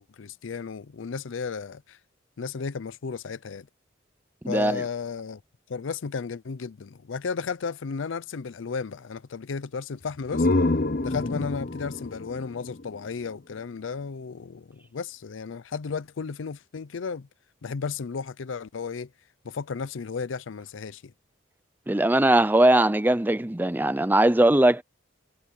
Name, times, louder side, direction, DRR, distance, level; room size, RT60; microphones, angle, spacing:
voice 1, 0.0-2.0 2.4-3.7 4.5-5.4 5.7-10.5 11.0-17.3 17.6-19.1 19.4-21.1, left 5 dB, 90° left, 0.5 m, -34 dB
voice 2, 4.4-4.8 21.9-24.8, right 1 dB, 10° right, 0.5 m, -20 dB
sound 1, 10.0-13.7, left 2 dB, 50° left, 0.8 m, -27 dB
head